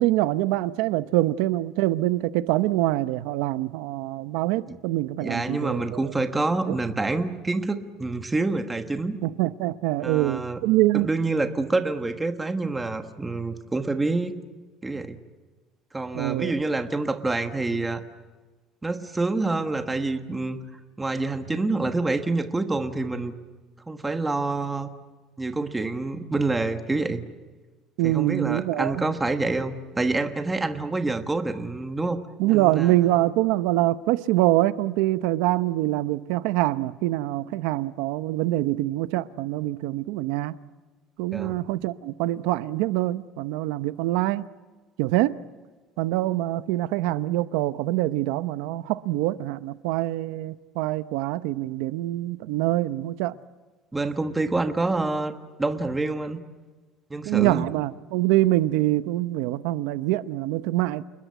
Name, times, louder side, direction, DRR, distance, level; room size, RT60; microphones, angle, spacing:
voice 1, 0.0-6.0 6.7-6.8 9.2-11.1 16.1-16.5 28.0-28.9 32.4-40.6 41.2-44.4 45.0-45.4 46.0-53.3 57.2-61.0, right 16 dB, 90° right, 0.8 m, -24 dB
voice 2, 5.2-9.2 10.0-10.6 10.9-14.4 14.8-15.2 15.9-18.0 18.8-20.6 21.0-23.3 23.9-24.9 25.4-27.2 28.0-32.2 32.5-32.9 41.3-41.6 53.9-55.3 55.6-56.4 57.1-57.7, right 3 dB, 10° right, 1.3 m, -27 dB
29.0 x 21.0 x 9.3 m
cardioid pair, 180°, 0 cm